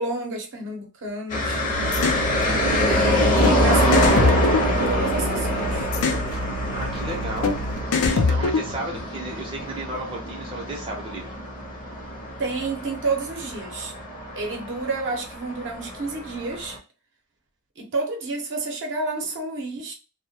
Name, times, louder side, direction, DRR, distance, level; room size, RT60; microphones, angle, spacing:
voice 1, 0.0-1.6 2.7-4.6 4.9-5.9 12.4-13.9 14.3-16.8 17.8-19.9, right 3 dB, 55° right, 0.7 m, -30 dB
sound 1, 1.3-16.8, equal, 35° left, 0.7 m, -25 dB
sound 2, 1.7-7.8, right 1 dB, 80° right, 0.4 m, -33 dB
sound 3, 1.9-2.2 3.4-3.6 3.9-5.3 5.9-6.3 7.4-7.6 7.9-9.0, left 4 dB, 75° left, 0.4 m, -22 dB
voice 2, 6.7-7.5 8.1-11.3, right 2 dB, 25° right, 0.6 m, -33 dB
2.2 x 2.1 x 2.7 m
head